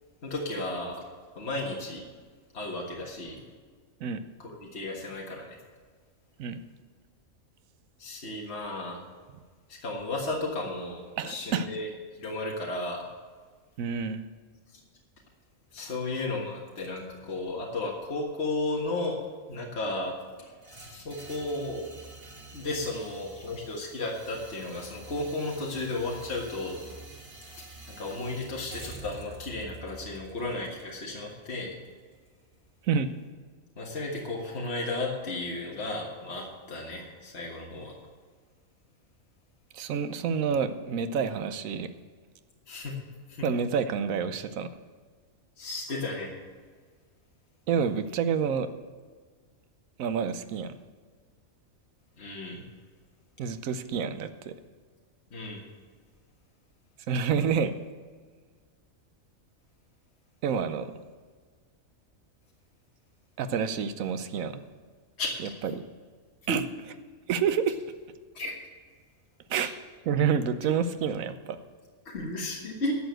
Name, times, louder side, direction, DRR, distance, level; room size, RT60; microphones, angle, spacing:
voice 1, 0.2-1.0 1.4-2.1 2.5-3.4 4.4-5.5 8.0-9.0 9.7-11.9 12.2-13.1 15.7-19.2 19.5-20.1 20.4-21.8 22.5-26.8 27.5-31.8 33.8-37.9 42.7-43.0 43.3-43.5 45.6-46.3 52.2-52.6 55.3-55.6 65.2-65.5 66.5-66.6 68.3-68.6 69.5-69.7 72.1-73.0, left 2 dB, 50° left, -2 dB, 1.8 m, -34 dB
voice 2, 11.2-11.7 13.8-14.3 32.8-33.1 39.7-41.9 43.4-44.7 47.7-48.7 50.0-50.7 53.4-54.5 57.1-57.7 60.4-60.9 63.4-64.6 65.6-65.8 66.5-66.6 67.3-67.8 69.5-69.7 70.0-71.6, right 6 dB, 80° right, 11 dB, 1.1 m, -28 dB
sound 1, 20.6-32.7, right 3 dB, 25° right, 1.1 m, -48 dB
12.5 x 7.1 x 7.8 m, 1.5 s
omnidirectional pair, 1.4 m